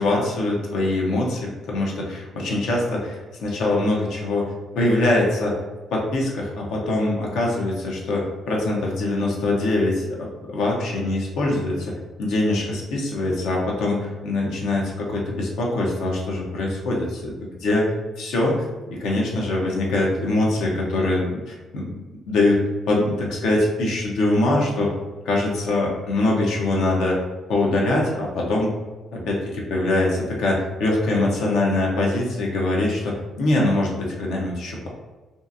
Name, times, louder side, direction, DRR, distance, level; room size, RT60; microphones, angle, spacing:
voice 1, 0.0-4.4 4.7-5.6 5.9-11.8 12.2-18.7 19.0-21.9 22.3-22.6 22.9-24.9 25.2-27.2 27.5-28.7 29.1-34.9, left 2 dB, 85° left, -2 dB, 0.7 m, -23 dB
2.7 x 2.5 x 2.5 m, 1.2 s
cardioid pair, 90°, 0 cm